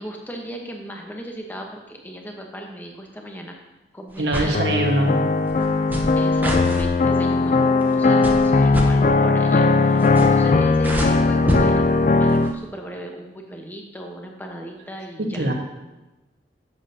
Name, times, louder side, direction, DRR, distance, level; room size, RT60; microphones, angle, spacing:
voice 1, 0.0-3.5 3.9-4.6 5.8-15.5, equal, 10° left, 1 dB, 1.0 m, -36 dB
sound 1, 4.2-4.6 5.5-6.9 7.8-8.0 8.2-8.9 9.9-10.5 10.7-11.6 12.3-12.5, equal, 10° right, 0.9 m, -26 dB
voice 2, 4.2-5.2 15.2-15.5, right 1 dB, 85° right, 1 dB, 1.4 m, -22 dB
sound 2, 4.5-12.5, left 3 dB, 45° left, 0.3 m, -18 dB
10.5 x 7.5 x 2.8 m, 1.0 s
head